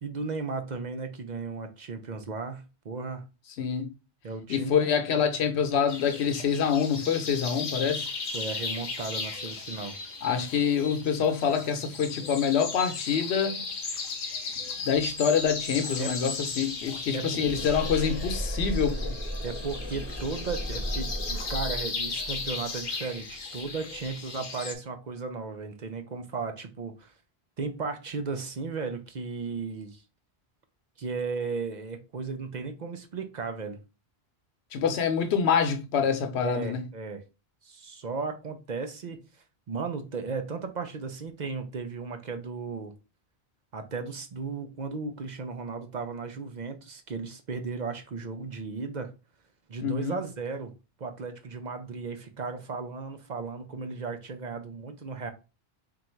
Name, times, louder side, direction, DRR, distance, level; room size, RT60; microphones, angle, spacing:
voice 1, 0.0-3.2 4.2-4.8 8.3-10.0 16.0-16.2 17.1-17.3 19.4-27.1 27.6-30.0 31.0-33.8 36.4-37.2 37.6-39.2 39.7-42.9 43.7-49.1 49.7-50.7 51.0-55.3, right 4 dB, 50° right, 0.7 m, -35 dB
voice 2, 3.6-3.9 4.5-8.1 10.2-13.7 14.8-19.1 34.7-36.8 49.8-50.2, left 7 dB, 90° left, 1.0 m, -26 dB
sound 1, 5.9-24.7, left 4 dB, 50° left, 0.8 m, -36 dB
sound 2, 15.3-24.1, equal, 15° right, 0.4 m, -36 dB
3.8 x 2.5 x 4.4 m
omnidirectional pair, 1.1 m